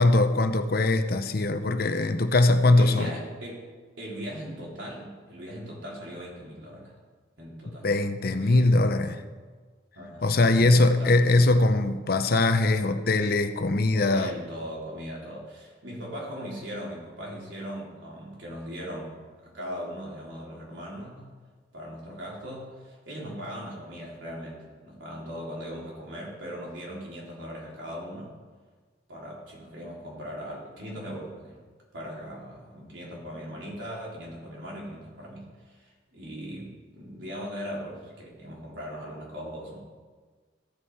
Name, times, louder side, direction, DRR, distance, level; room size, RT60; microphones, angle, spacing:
voice 1, 0.0-3.1 7.8-9.2 10.2-14.3, left 2 dB, 55° left, 9 dB, 0.7 m, -21 dB
voice 2, 2.8-3.7 4.0-6.9 7.4-7.9 8.3-8.8 9.9-11.7 13.9-21.4 21.7-28.3 29.1-31.6 31.9-39.8, equal, 90° right, -4 dB, 3.5 m, -39 dB
14.5 x 7.1 x 4.7 m, 1.5 s
head